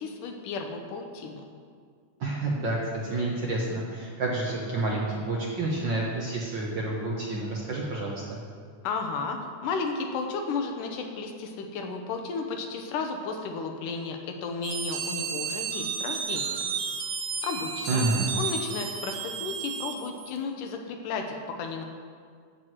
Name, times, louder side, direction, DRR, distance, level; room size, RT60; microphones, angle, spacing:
voice 1, 0.0-1.4 8.8-16.6 17.4-18.1 18.4-21.8, left 4 dB, 75° left, 4 dB, 2.6 m, -33 dB
voice 2, 2.2-8.4 17.9-18.3, right 2 dB, 65° right, -3 dB, 1.1 m, -29 dB
sound 1, 14.6-20.4, right 6 dB, 85° right, 1.2 m, -32 dB
13.5 x 4.7 x 7.9 m, 2.1 s
omnidirectional pair, 3.8 m